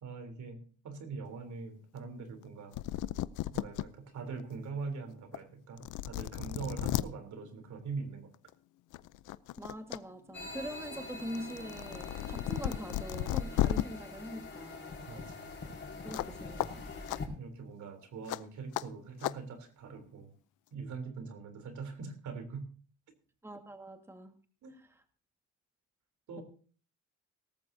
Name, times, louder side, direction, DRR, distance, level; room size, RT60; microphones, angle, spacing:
voice 1, 0.0-2.7 3.5-8.3 15.1-15.5 17.4-20.3 20.7-22.7 24.6-24.7 26.3-26.4, right 4 dB, 70° right, 7 dB, 3.5 m, -42 dB
sound 1, 2.5-2.6 2.7-3.8 4.4-4.5 5.3-5.4 5.8-7.0 8.3-8.5 8.9-10.0 10.3-13.8 16.1-16.3 16.6-16.7 17.1-17.2 18.3-18.4 18.7-18.8 19.2-19.3, left 14 dB, 85° left, 0.6 m, -34 dB
voice 2, 9.6-15.5 16.0-17.2 23.4-24.4 24.7-25.0, equal, 10° right, 5 dB, 1.7 m, -44 dB
sound 2, 10.3-17.3, left 3 dB, 35° left, 4.6 m, -44 dB
18.0 x 14.0 x 2.7 m, 0.42 s
cardioid pair, 90°, 30 cm